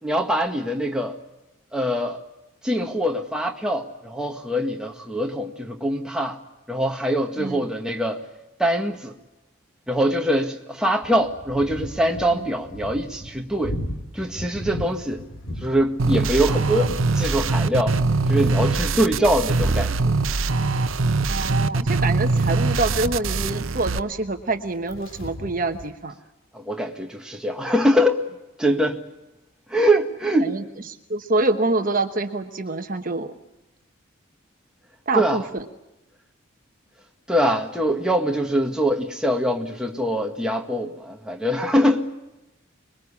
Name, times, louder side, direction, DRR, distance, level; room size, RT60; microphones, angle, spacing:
voice 1, 0.0-1.2 1.7-2.2 2.6-6.4 6.7-8.3 8.6-9.2 9.9-13.8 14.1-15.2 15.6-18.0 18.3-20.1 26.5-28.2 28.6-29.0 29.7-30.6 35.1-35.4 37.3-42.1, equal, 5° right, 1.8 m, -23 dB
sound 1, 11.0-25.9, equal, 80° left, 3.0 m, -38 dB
sound 2, 16.0-24.0, right 3 dB, 75° right, 0.9 m, -22 dB
voice 2, 21.3-26.1 30.4-33.3 35.1-35.6, right 2 dB, 40° right, 1.2 m, -26 dB
25.5 x 21.5 x 8.5 m
head